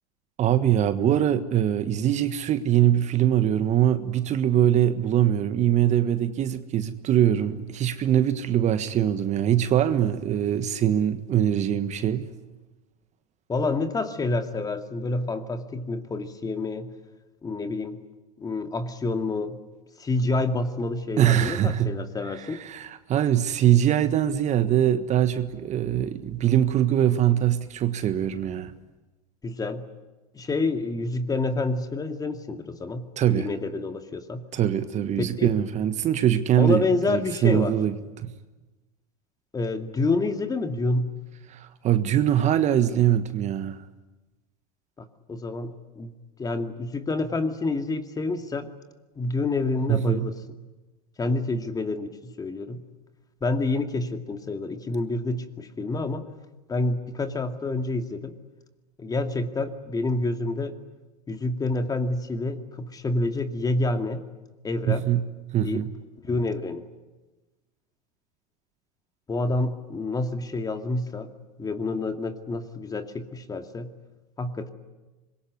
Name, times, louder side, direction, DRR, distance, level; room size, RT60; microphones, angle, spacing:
voice 1, 0.4-12.3 21.2-21.9 22.3-28.7 33.2-33.5 34.5-38.3 41.5-43.8 49.9-50.3 64.8-65.3 65.5-65.9, right 10 dB, 35° right, 1.5 m, -23 dB
voice 2, 13.5-16.9 17.4-18.0 18.4-19.6 20.0-22.6 29.4-29.9 30.3-34.4 35.2-35.5 36.6-37.7 39.5-41.1 45.0-46.1 46.4-48.7 49.2-50.4 51.2-52.8 53.4-56.2 56.7-58.3 59.0-60.7 61.3-64.2 64.6-65.1 65.6-65.8 66.2-66.8 69.3-71.3 71.6-73.9 74.4-74.7, left 2 dB, 20° left, 2.3 m, -28 dB
25.5 x 22.0 x 9.7 m
hypercardioid pair, 95°, 20 cm